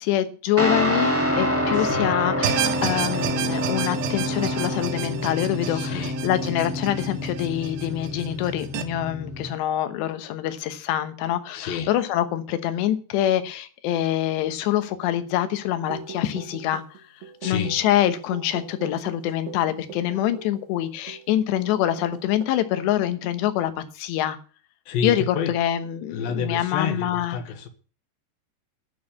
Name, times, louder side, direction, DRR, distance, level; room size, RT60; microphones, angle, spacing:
voice 1, 0.0-16.8 17.4-24.4 25.0-27.4, left 12 dB, 85° left, 3.3 m, -25 dB
Guitar, 0.6-9.5, left 1 dB, 10° right, 0.6 m, -27 dB
voice 2, 1.7-2.1 5.6-6.2 11.5-11.9 17.4-17.8 24.9-25.5 26.1-27.7, left 6 dB, 65° left, 2.8 m, -29 dB
sound 1, 2.4-8.8, right 12 dB, 90° right, 3.2 m, -31 dB
sound 2, 15.9-21.3 21.6-21.7 22.0-22.4, right 7 dB, 65° right, 1.8 m, -41 dB
12.0 x 6.4 x 8.4 m
omnidirectional pair, 4.9 m